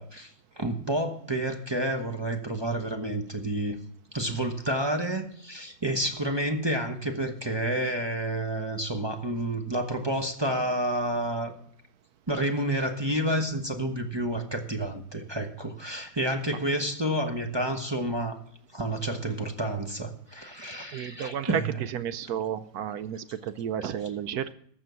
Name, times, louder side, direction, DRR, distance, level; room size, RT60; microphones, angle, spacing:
voice 1, 0.0-3.8 4.1-11.5 12.3-18.4 18.7-21.7, right 1 dB, 25° right, 4 dB, 0.6 m, -29 dB
voice 2, 20.9-24.5, right 9 dB, 70° right, 13 dB, 0.9 m, -32 dB
14.0 x 6.1 x 6.9 m, 0.65 s
omnidirectional pair, 2.1 m